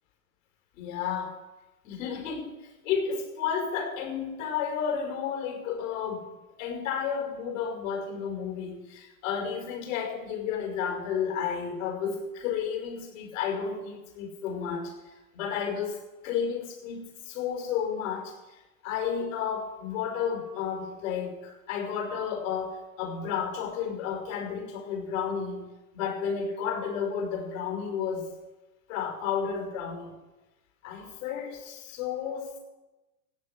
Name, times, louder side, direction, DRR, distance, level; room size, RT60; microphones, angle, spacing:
voice 1, 0.7-1.4 1.8-6.3 6.6-28.3 28.9-30.1 30.8-32.6, left 7 dB, 60° left, 3 dB, 5.7 m, -32 dB
16.5 x 8.7 x 7.0 m, 1.1 s
hypercardioid pair, 135°, 43 cm